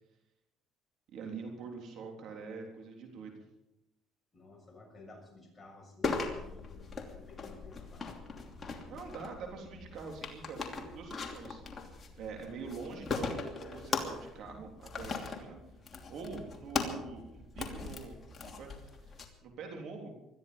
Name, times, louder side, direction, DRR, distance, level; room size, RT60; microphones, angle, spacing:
voice 1, 1.1-3.4 8.9-11.6 12.2-15.6 16.1-18.7 19.0-20.1, right 5 dB, 65° right, 2 dB, 3.5 m, -45 dB
voice 2, 4.3-8.0 15.9-16.3, left 2 dB, 15° left, 1 dB, 6.6 m, -54 dB
sound 1, 6.0-19.2, left 4 dB, 30° left, 2.9 m, -39 dB
20.0 x 13.5 x 5.3 m, 0.87 s
cardioid pair, 95°, 0 cm